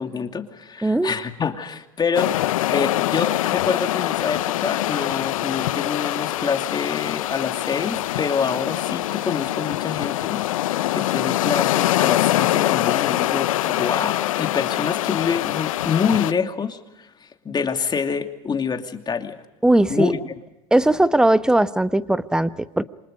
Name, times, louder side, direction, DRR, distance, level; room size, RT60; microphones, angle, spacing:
voice 1, 0.0-10.4 10.9-19.4 19.9-20.3, left 6 dB, 25° left, 5 dB, 2.7 m, -26 dB
voice 2, 0.8-1.1 19.6-20.1 20.7-22.8, right 1 dB, 5° right, 13 dB, 1.1 m, -18 dB
sound 1, 2.1-16.3, left 15 dB, 80° left, 0.7 m, -24 dB
28.0 x 25.5 x 5.3 m, 0.96 s
hypercardioid pair, 90°, 17 cm